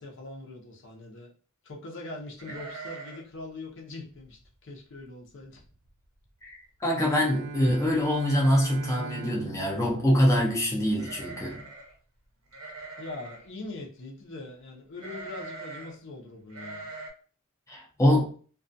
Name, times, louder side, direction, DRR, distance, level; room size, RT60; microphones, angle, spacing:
voice 1, 0.0-1.3 1.6-5.6 13.0-16.9, left 2 dB, 60° left, 0.7 m, -42 dB
sound 1, 2.4-3.4 3.6-3.7 4.2-4.5 5.0-5.1 5.4-5.9 6.2-6.3 7.4-7.5 7.8-8.3 10.9-11.9 12.5-13.5 15.0-15.9 16.5-17.1, right 3 dB, 90° right, 0.6 m, -42 dB
voice 2, 6.4-11.6 17.7-18.3, equal, 15° left, 0.5 m, -24 dB
Bowed string instrument, 6.9-11.0, right 5 dB, 50° right, 0.3 m, -40 dB
2.3 x 2.3 x 2.5 m
head